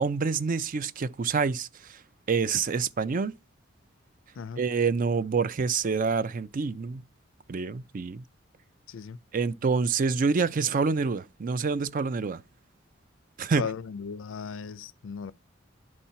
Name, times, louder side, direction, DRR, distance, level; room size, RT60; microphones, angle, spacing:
voice 1, 0.0-1.7 2.3-3.3 4.6-7.0 7.5-8.2 9.3-12.4 13.4-13.7, right 5 dB, 45° right, 0.4 m, -27 dB
voice 2, 8.9-9.2 13.6-15.3, left 6 dB, 80° left, 0.5 m, -36 dB
10.5 x 4.3 x 5.6 m
head